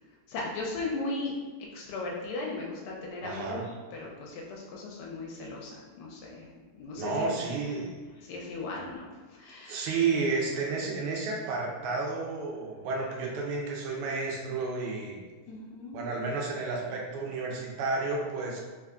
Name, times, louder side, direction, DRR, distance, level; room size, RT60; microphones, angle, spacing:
voice 1, 0.3-7.3 8.2-10.0 15.5-16.0, left 3 dB, 85° left, -2 dB, 1.5 m, -37 dB
voice 2, 3.2-3.6 7.0-8.0 9.7-15.2 15.9-18.6, right 4 dB, 85° right, -2 dB, 1.6 m, -31 dB
3.6 x 3.4 x 2.3 m, 1.4 s
omnidirectional pair, 2.4 m